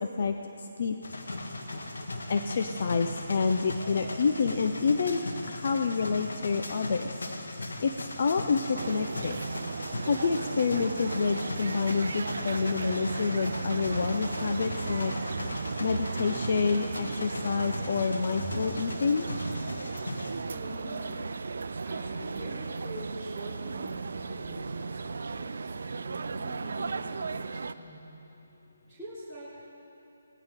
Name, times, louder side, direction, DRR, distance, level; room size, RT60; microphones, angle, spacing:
voice 1, 0.0-1.0 2.3-5.2 5.5-7.2 7.8-9.4 10.1-15.1 15.8-19.3, left 5 dB, 50° left, 6 dB, 0.7 m, -28 dB
sound 1, 1.0-20.4, left 2 dB, 80° left, 1.9 m, -38 dB
sound 2, 8.7-27.7, right 4 dB, 65° right, 0.6 m, -36 dB
voice 2, 20.5-21.2 21.8-28.1 28.9-29.7, right 1 dB, 5° left, -14 dB, 3.8 m, -44 dB
21.5 x 18.0 x 3.7 m, 2.8 s
figure-of-eight pair, 155°, 0 cm